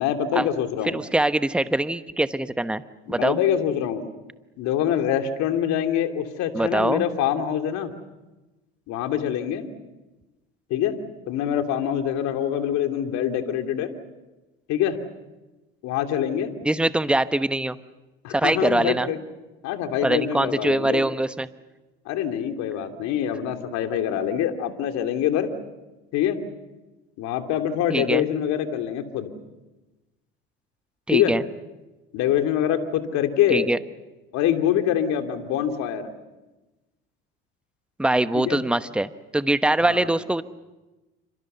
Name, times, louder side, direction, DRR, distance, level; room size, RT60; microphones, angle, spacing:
voice 1, 0.0-1.0 3.2-4.0 4.6-7.9 8.9-9.7 10.7-11.0 11.3-13.9 14.7-15.0 15.8-16.5 18.2-19.2 19.6-21.0 22.1-25.5 26.1-26.4 27.2-29.3 31.1-31.3 32.1-33.7 34.3-36.1 38.3-38.6 39.8-40.1, left 10 dB, 65° left, 6 dB, 3.0 m, -25 dB
voice 2, 0.8-2.8 3.1-3.4 6.5-7.1 16.6-17.8 18.3-19.1 20.0-21.5 27.9-28.2 31.1-31.4 33.5-33.8 38.0-40.4, right 1 dB, 5° right, 12 dB, 1.1 m, -23 dB
28.5 x 26.5 x 6.9 m, 1.1 s
hypercardioid pair, 75°, 30 cm